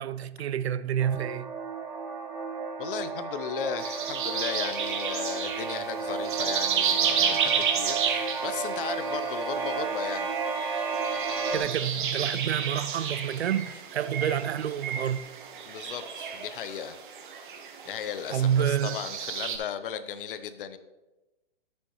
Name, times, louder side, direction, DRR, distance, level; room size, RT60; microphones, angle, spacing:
voice 1, 0.0-1.5 11.5-15.2 18.3-19.0, right 9 dB, 80° right, 0.6 m, -28 dB
sound 1, 1.0-11.6, right 5 dB, 5° right, 0.4 m, -33 dB
voice 2, 2.8-10.3 15.7-17.0 17.9-20.8, left 8 dB, 60° left, 0.6 m, -36 dB
sound 2, 3.8-19.6, right 7 dB, 50° right, 1.4 m, -32 dB
sound 3, 4.3-9.3, equal, 10° left, 2.5 m, -53 dB
13.0 x 6.3 x 3.1 m
hypercardioid pair, 150°, 32 cm